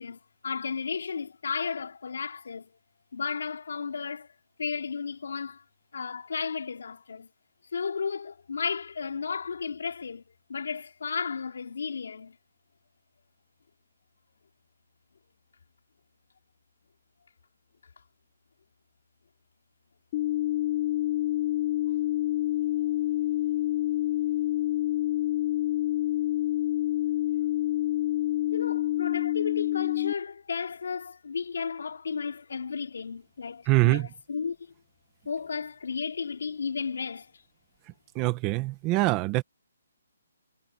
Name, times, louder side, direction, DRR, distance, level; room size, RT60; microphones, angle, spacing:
voice 1, 0.0-2.7 3.1-4.3 4.6-5.6 5.9-7.3 7.7-10.2 10.5-12.4 28.5-34.6 35.3-37.3, left 5 dB, 65° left, 3.9 m, -34 dB
sound 1, 20.1-30.1, left 14 dB, 30° left, 4.9 m, -27 dB
voice 2, 33.7-34.1 38.1-39.4, right 20 dB, 15° right, 1.5 m, -24 dB
hypercardioid pair, 170°, 0 cm